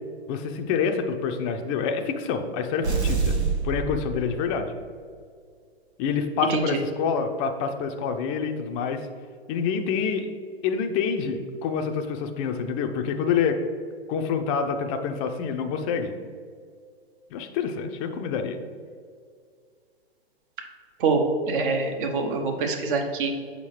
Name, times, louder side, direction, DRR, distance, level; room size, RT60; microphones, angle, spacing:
voice 1, 0.3-3.4 3.6-4.7 6.0-9.1 9.5-10.3 10.6-13.6 14.1-16.1 17.3-18.6, left 6 dB, 30° left, 6 dB, 0.5 m, -27 dB
sound 1, 2.8-4.7, right 5 dB, 85° right, 1.0 m, -26 dB
voice 2, 21.0-23.3, right 4 dB, 50° right, 4 dB, 1.0 m, -25 dB
6.4 x 5.0 x 3.2 m, 2.1 s
figure-of-eight pair, 110°, 33 cm